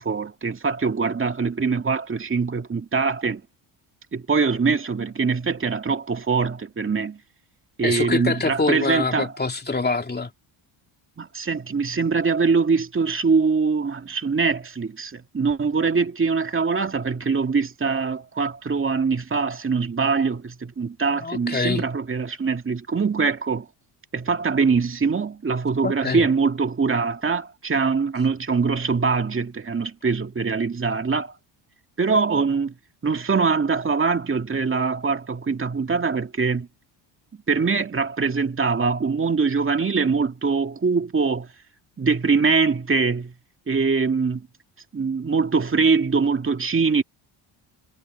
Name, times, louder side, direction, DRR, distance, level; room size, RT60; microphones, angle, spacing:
voice 1, 0.0-3.4 4.1-7.2 7.8-9.3 11.2-23.7 24.1-31.3 32.0-32.7 33.0-36.7 37.5-41.5 42.0-43.3 43.7-44.5 44.9-47.0, right 5 dB, 25° right, 2.2 m, -23 dB
voice 2, 7.8-10.3 21.1-21.8 25.8-26.3, left 3 dB, 20° left, 2.9 m, -25 dB
cardioid pair, 85°, 49 cm